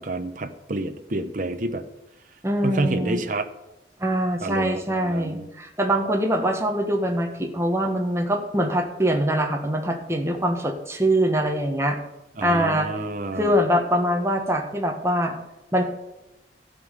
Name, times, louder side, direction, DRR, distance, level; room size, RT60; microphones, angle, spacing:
voice 1, 0.0-1.8 2.6-3.5 4.4-5.5 12.4-13.5, right 2 dB, 45° right, 7 dB, 0.9 m, -29 dB
voice 2, 2.4-3.2 4.0-12.0 12.4-12.9 13.3-15.3 15.7-15.8, equal, 15° right, 3 dB, 1.6 m, -23 dB
12.5 x 5.4 x 9.2 m, 0.96 s
head